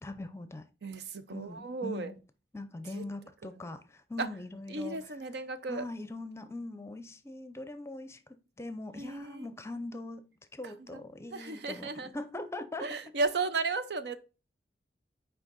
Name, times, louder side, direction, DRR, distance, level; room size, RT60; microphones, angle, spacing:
voice 1, 0.0-0.7 1.3-2.2 2.5-5.0 5.7-10.2 10.5-12.9, left 2 dB, 15° left, 0.6 m, -41 dB
voice 2, 0.8-2.1 2.9-3.0 4.2-4.3 4.7-5.9 9.0-9.5 10.6-11.0 11.3-12.1 12.8-14.2, right 3 dB, 70° right, 0.6 m, -34 dB
6.3 x 4.8 x 3.9 m
head